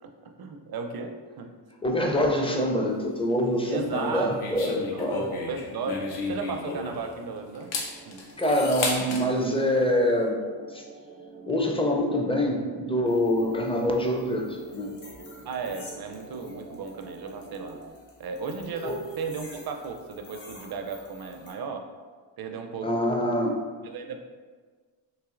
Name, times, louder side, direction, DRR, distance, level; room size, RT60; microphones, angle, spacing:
voice 1, 0.0-1.5 2.0-2.1 3.7-5.1 5.5-6.0 6.3-7.7 8.1-8.2 15.5-17.8 18.2-21.9 22.4-23.3 23.8-24.2, right 4 dB, 50° right, 5 dB, 0.5 m, -35 dB
voice 2, 1.8-5.3 8.4-10.4 10.7-10.8 11.5-14.9 18.8-19.0 22.8-23.6, left 1 dB, 10° left, 1 dB, 0.4 m, -25 dB
sound 1, 3.9-7.1 7.5-9.3, left 3 dB, 75° left, 0.7 m, -32 dB
sound 2, 6.8-17.9, right 3 dB, 90° right, 0.7 m, -46 dB
sound 3, 13.1-21.5, left 2 dB, 60° left, 1.1 m, -51 dB
4.0 x 2.7 x 2.4 m, 1.5 s
cardioid pair, 60°, 50 cm